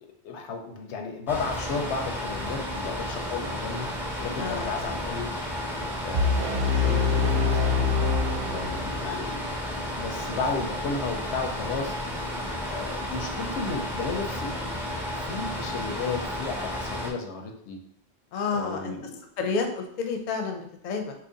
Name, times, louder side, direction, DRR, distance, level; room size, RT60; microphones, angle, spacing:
voice 1, 0.2-3.9 4.2-5.3 6.0-7.9 8.5-11.9 12.7-14.5 15.2-17.8 18.5-19.2, left 4 dB, 90° left, 4 dB, 0.9 m, -33 dB
sound 1, 1.3-17.1, left 1 dB, 5° right, 0.3 m, -32 dB
sound 2, 6.1-9.2, left 5 dB, 60° right, 0.7 m, -25 dB
voice 2, 18.3-18.9 19.4-21.1, left 4 dB, 55° left, 4 dB, 0.6 m, -30 dB
2.9 x 2.5 x 3.8 m, 0.67 s
omnidirectional pair, 1.1 m